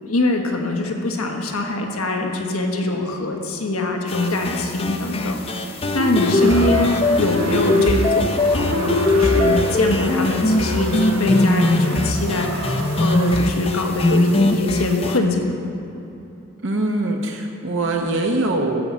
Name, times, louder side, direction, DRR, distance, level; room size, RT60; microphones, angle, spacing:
voice 1, 0.0-5.4 5.9-15.7, left 2 dB, 90° left, 2 dB, 1.3 m, -23 dB
sound 1, 4.1-15.2, left 2 dB, 25° left, 0.6 m, -20 dB
sound 2, 6.1-13.5, right 2 dB, 85° right, 0.9 m, -31 dB
voice 2, 6.3-6.8 16.6-18.8, right 2 dB, 60° right, 2 dB, 0.9 m, -23 dB
13.5 x 5.5 x 7.3 m, 2.9 s
head